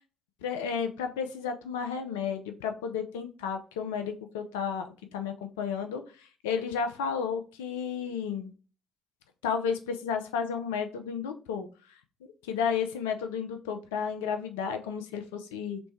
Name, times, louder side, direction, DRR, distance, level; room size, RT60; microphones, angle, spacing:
voice 1, 0.4-4.9 5.1-8.5 9.4-11.7 12.4-15.8, left 6 dB, 85° left, 6 dB, 0.5 m, -32 dB
3.2 x 3.2 x 4.3 m, 0.37 s
hypercardioid pair, 55°, 0 cm